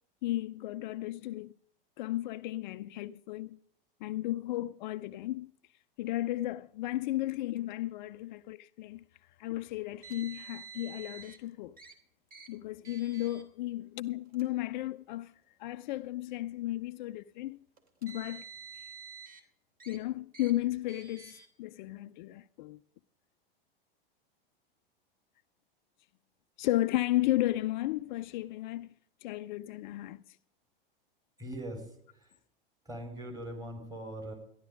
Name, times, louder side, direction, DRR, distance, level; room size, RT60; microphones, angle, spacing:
voice 1, 0.2-1.5 2.0-3.6 4.0-5.5 6.0-9.0 9.4-11.8 12.5-15.3 15.6-17.6 18.0-18.4 19.9-22.8 26.6-28.9 29.2-30.4, left 16 dB, 55° left, 0.5 m, -34 dB
Car, 10.0-11.4 11.8-11.9 12.3-12.5 12.8-13.4 14.2-14.4 15.4-15.5 17.8-19.4 19.8-20.0 20.3-20.5 20.9-21.5, right 6 dB, 30° right, 2.8 m, -49 dB
voice 2, 31.4-32.3 32.8-34.3, right 1 dB, 15° right, 4.5 m, -41 dB
14.0 x 11.0 x 5.0 m
hypercardioid pair, 95°, 29 cm